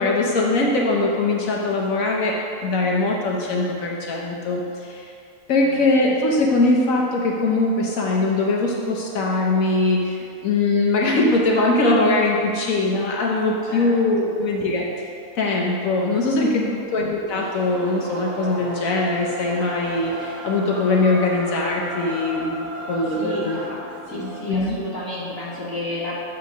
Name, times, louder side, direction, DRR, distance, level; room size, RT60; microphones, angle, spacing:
voice 1, 0.0-5.1 5.5-14.9 15.4-23.6 24.1-24.8, left 2 dB, 65° left, -2 dB, 1.1 m, -21 dB
voice 2, 16.3-16.8 23.1-23.5 24.1-26.3, left 1 dB, 15° right, -9 dB, 1.5 m, -32 dB
sound 1, 17.3-24.5, right 1 dB, 80° right, 1.6 m, -34 dB
7.6 x 3.6 x 6.0 m, 2.5 s
omnidirectional pair, 1.6 m